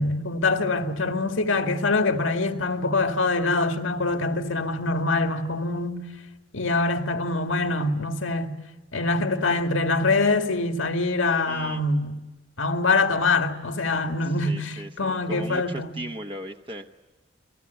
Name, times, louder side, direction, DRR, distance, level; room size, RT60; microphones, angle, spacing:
voice 1, 0.0-6.0 6.5-8.5 8.9-12.1 12.6-16.0, left 3 dB, 85° left, 2.0 m, -24 dB
voice 2, 11.5-11.8 14.2-17.0, right 1 dB, 25° right, 0.9 m, -38 dB
29.5 x 20.5 x 8.2 m
head